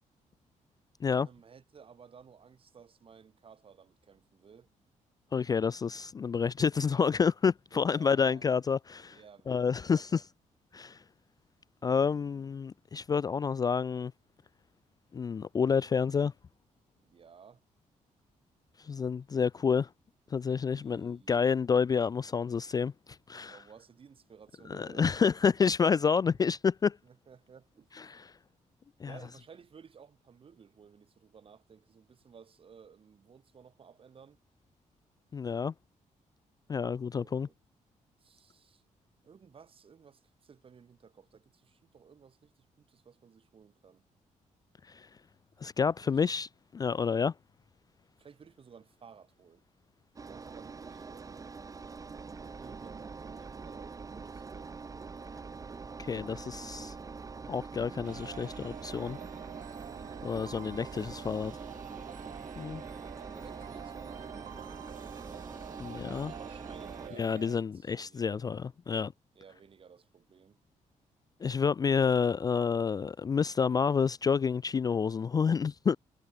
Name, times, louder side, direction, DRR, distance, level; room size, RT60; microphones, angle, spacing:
voice 1, 1.2-4.7 7.7-8.4 9.1-10.2 16.9-17.6 20.7-21.4 23.4-25.1 27.0-27.9 29.0-34.4 37.1-37.5 38.2-38.8 39.2-44.0 46.0-46.2 48.2-49.6 50.3-51.5 52.4-54.7 63.0-65.0 66.1-68.4 69.3-70.6, right 6 dB, 45° right, 4.7 m, -56 dB
voice 2, 5.3-9.2 9.5-10.2 10.7-11.0 11.8-14.1 15.1-16.3 18.8-19.9 20.3-23.6 24.7-27.0 28.0-28.3 29.0-29.1 35.3-35.7 36.7-37.5 44.9-45.1 45.6-47.3 56.0-56.9 57.5-59.2 60.2-61.6 62.6-62.8 65.8-66.3 67.2-69.1 71.4-76.0, left 6 dB, 30° left, 0.4 m, -29 dB
Engine, 50.2-67.1, right 4 dB, 25° right, 0.9 m, -44 dB
sound 1, 58.0-67.6, right 11 dB, 80° right, 3.1 m, -48 dB
cardioid pair, 130°, 13 cm